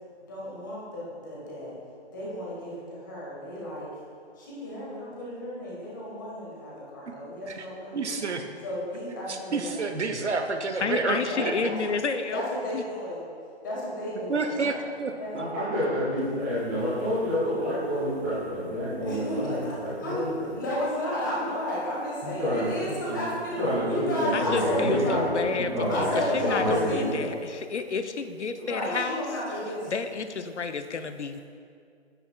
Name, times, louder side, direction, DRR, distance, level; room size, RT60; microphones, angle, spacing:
voice 1, 0.2-1.7 2.1-3.9 4.4-8.1 8.6-10.0 11.2-12.0 12.3-13.2 13.6-14.8 15.2-15.4 19.0-23.6 23.8-25.3 25.9-27.4 28.6-29.9, equal, 15° left, -6 dB, 1.3 m, -32 dB
voice 2, 7.9-8.4 9.3-11.5 14.3-15.5, right 4 dB, 80° right, 6 dB, 0.8 m, -29 dB
voice 3, 10.8-12.4 12.7-12.8 24.3-29.2 29.9-31.4, left 5 dB, 80° left, 9 dB, 0.6 m, -31 dB
voice 4, 15.3-20.5 22.4-23.2 23.6-26.1 26.4-27.1, equal, 10° right, -10 dB, 1.7 m, -28 dB
9.6 x 7.9 x 2.2 m, 2.3 s
figure-of-eight pair, 160°, 34 cm